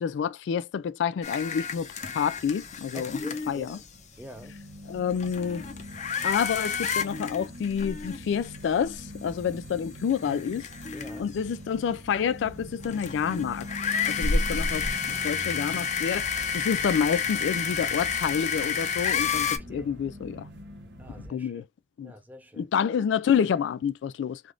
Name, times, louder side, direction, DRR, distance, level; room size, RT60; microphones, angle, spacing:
voice 1, 0.0-3.2 3.5-3.8 4.9-5.7 6.2-10.7 11.2-13.7 14.1-14.9 15.2-20.5 21.3-21.7 22.0-22.1 22.6-24.4, left 7 dB, 90° left, 0.3 m, -28 dB
sound 1, 1.2-3.8 4.7-4.8 5.1-8.6 8.9-9.0 9.8-11.4 12.8-19.6, left 6 dB, 40° left, 0.6 m, -30 dB
sound 2, 1.8-21.3, equal, 75° right, 0.9 m, -44 dB
voice 2, 2.9-3.8 4.2-4.6 10.9-11.3 14.6-14.7 19.7-19.9 21.0-21.6 22.0-22.6, right 1 dB, 10° right, 0.6 m, -45 dB
3.4 x 2.4 x 2.4 m
head